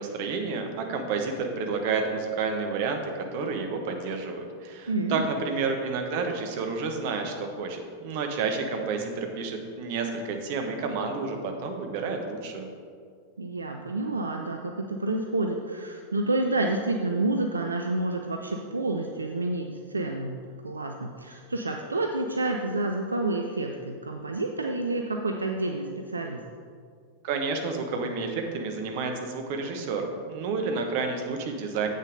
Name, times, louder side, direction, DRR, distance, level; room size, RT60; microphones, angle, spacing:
voice 1, 0.0-3.0 3.3-12.7 27.2-31.9, right 4 dB, 50° right, 4 dB, 1.2 m, -30 dB
voice 2, 4.9-5.3 13.4-20.4 20.6-26.4, right 2 dB, 75° right, 3 dB, 0.5 m, -29 dB
8.2 x 6.6 x 5.2 m, 2.1 s
figure-of-eight pair, 90°, 0 cm